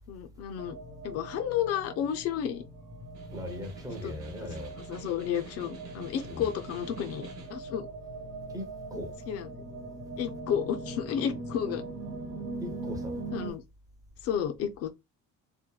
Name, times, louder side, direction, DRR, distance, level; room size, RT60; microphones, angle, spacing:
voice 1, 0.1-0.8 1.0-2.6 4.0-4.1 4.7-7.9 9.3-9.5 10.2-11.8 13.3-13.6 14.2-14.9, left 9 dB, 50° left, 0.4 m, -32 dB
sound 1, 0.6-13.5, right 2 dB, 55° right, 0.8 m, -41 dB
Snare drum, 3.0-7.6, right 5 dB, 85° right, 0.9 m, -47 dB
voice 2, 3.3-4.7 6.2-6.5 8.5-9.1 12.6-13.2, left 1 dB, 10° right, 0.5 m, -39 dB
2.7 x 2.2 x 2.2 m
cardioid pair, 155°, 32 cm